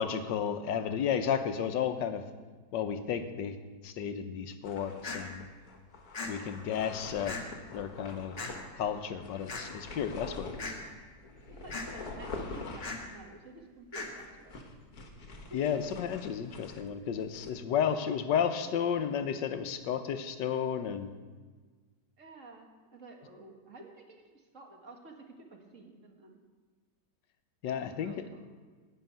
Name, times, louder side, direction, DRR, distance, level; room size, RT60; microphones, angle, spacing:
voice 1, 0.0-2.2 2.7-3.6 3.8-5.5 6.3-7.4 7.7-10.5 15.5-21.1 27.6-28.2, left 8 dB, 80° left, 9 dB, 1.4 m, -32 dB
sound 1, 4.6-17.5, left 3 dB, 55° left, 1.6 m, -46 dB
sound 2, 5.0-5.2 6.1-6.3 7.3-7.4 8.4-8.5 9.5-9.6 10.6-10.8 11.7-11.9 12.8-13.0 13.9-14.1, left 3 dB, 35° left, 1.6 m, -37 dB
voice 2, 11.5-14.6 22.2-26.4 27.7-28.2, right 2 dB, 45° right, 2 dB, 1.8 m, -51 dB
11.0 x 6.3 x 9.1 m, 1.4 s
omnidirectional pair, 1.9 m